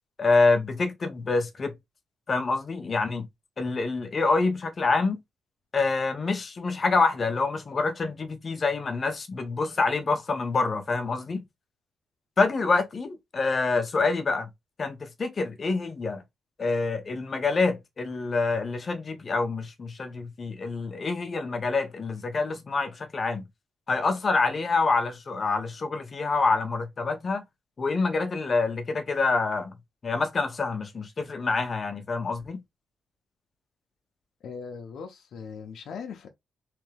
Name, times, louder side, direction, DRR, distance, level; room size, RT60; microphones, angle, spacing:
voice 1, 0.2-1.7 2.3-3.3 3.6-5.2 5.7-11.4 12.4-14.5 14.8-16.2 16.6-23.5 23.9-27.4 27.8-29.7 30.0-32.6, left 3 dB, 30° left, 0.8 m, -26 dB
voice 2, 34.4-36.3, left 6 dB, 65° left, 0.7 m, -39 dB
3.5 x 3.3 x 3.4 m
cardioid pair, 150°, 0 cm